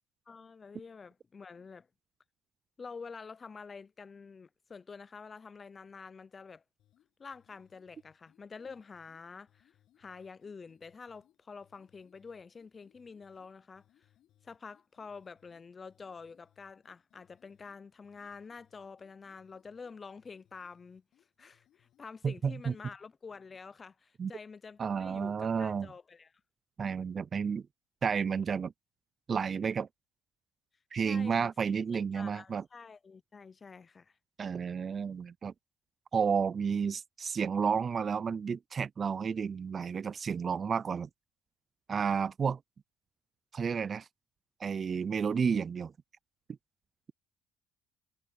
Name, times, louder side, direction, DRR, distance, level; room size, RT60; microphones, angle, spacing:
voice 1, 0.3-1.9 2.8-6.6 7.2-14.1 14.4-21.0 21.4-26.3 30.9-31.5 31.9-34.2, left 5 dB, 25° left, 0.5 m, -48 dB
sound 1, 6.8-23.0, left 12 dB, 60° left, 7.5 m, -71 dB
voice 2, 22.2-22.7 24.2-24.3 24.8-25.9 26.8-27.6 28.0-28.7 29.3-29.9 30.9-32.6 34.4-35.5 36.1-41.1 41.9-42.6 43.5-44.1 44.6-45.9, right 6 dB, 35° right, 0.3 m, -31 dB
cardioid pair, 110°, 0 cm